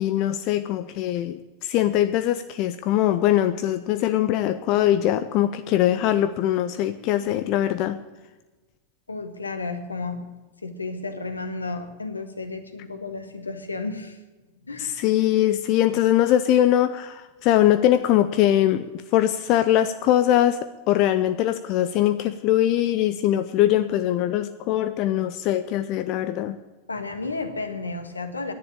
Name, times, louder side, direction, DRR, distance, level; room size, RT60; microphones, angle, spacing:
voice 1, 0.0-8.0 14.8-18.9 19.1-20.6 20.9-26.6, left 12 dB, 40° left, 11 dB, 0.6 m, -22 dB
voice 2, 9.1-10.3 10.6-14.2 14.6-15.0 26.9-28.5, left 3 dB, 80° left, 8 dB, 1.5 m, -32 dB
11.5 x 10.0 x 8.7 m, 1.2 s
figure-of-eight pair, 90°, 0 cm